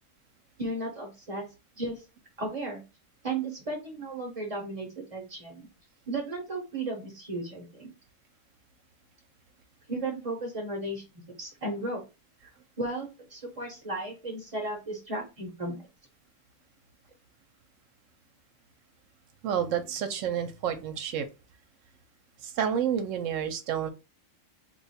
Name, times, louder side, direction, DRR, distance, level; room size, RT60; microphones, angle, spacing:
voice 1, 0.6-1.5 1.8-2.0 2.4-2.8 3.2-5.7 6.1-7.9 9.9-11.0 11.4-12.0 12.4-12.5 12.8-15.8, right 2 dB, 30° right, 0 dB, 0.8 m, -35 dB
voice 2, 19.4-21.3 22.4-23.9, right 8 dB, 80° right, 9 dB, 1.0 m, -29 dB
3.0 x 2.3 x 4.1 m, 0.28 s
omnidirectional pair, 1.3 m